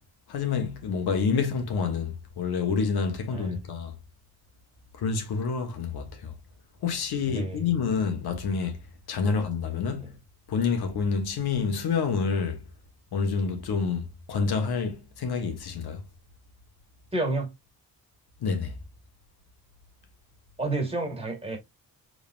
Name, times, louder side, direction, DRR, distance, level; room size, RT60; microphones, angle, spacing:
voice 1, 0.3-3.9 5.0-6.3 6.8-8.8 9.1-10.1 10.5-12.6 13.1-16.0 18.4-18.8, left 5 dB, 90° left, 1.5 m, -28 dB
voice 2, 3.3-3.6 7.3-7.7 9.2-9.3 10.0-10.1 17.1-17.5 20.6-21.6, right 2 dB, 15° right, 1.8 m, -30 dB
5.3 x 3.9 x 2.4 m
wide cardioid pair, 155°, 37 cm